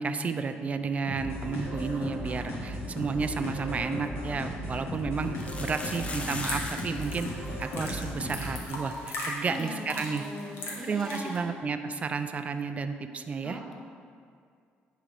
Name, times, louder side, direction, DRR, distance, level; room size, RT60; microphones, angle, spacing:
voice 1, 0.0-7.3 7.6-10.2 10.8-13.7, right 5 dB, 35° right, 8 dB, 0.4 m, -32 dB
sound 1, 1.1-8.7, left 1 dB, 85° left, 1.3 m, -36 dB
sound 2, 4.0-4.1 5.3-7.0 7.3-7.4 7.6-7.8 8.4-8.5 8.8-8.9 10.9-11.0, left 2 dB, 30° left, 0.7 m, -39 dB
sound 3, 6.0-11.4, left 2 dB, 70° left, 1.3 m, -39 dB
voice 2, 9.4-11.5 13.4-13.7, equal, 5° left, -2 dB, 1.1 m, -40 dB
9.8 x 3.8 x 3.4 m, 2.2 s
cardioid pair, 95°, 4 cm